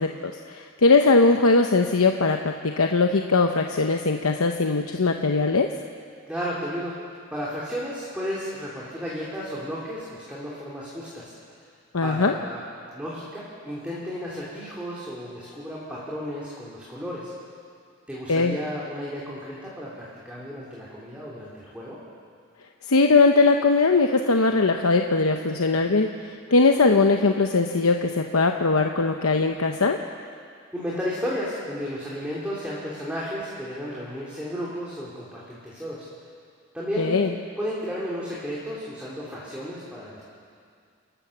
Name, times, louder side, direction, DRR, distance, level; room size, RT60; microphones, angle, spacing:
voice 1, 0.0-5.7 11.9-12.3 18.3-18.6 22.9-30.0 37.0-37.3, left 3 dB, 85° left, 4 dB, 0.9 m, -20 dB
voice 2, 6.3-6.9 7.3-11.3 12.0-12.6 12.9-17.3 18.1-22.0 30.7-36.1 36.7-37.2 37.6-40.2, equal, 5° right, -7 dB, 3.1 m, -33 dB
29.5 x 13.0 x 7.1 m, 2.2 s
head